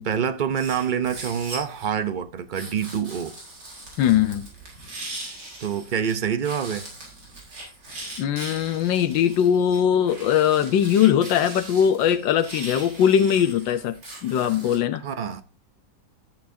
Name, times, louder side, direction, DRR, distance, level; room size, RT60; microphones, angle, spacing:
voice 1, 0.1-3.4 5.6-6.9 15.0-15.4, right 7 dB, 55° right, 0.5 m, -26 dB
sound 1, 0.5-1.9 2.5-6.1 6.4-14.8, right 2 dB, 70° right, 4.8 m, -40 dB
voice 2, 4.0-4.5 8.2-14.0 14.2-15.0, left 9 dB, 90° left, 1.5 m, -20 dB
13.5 x 8.6 x 2.7 m
omnidirectional pair, 1.9 m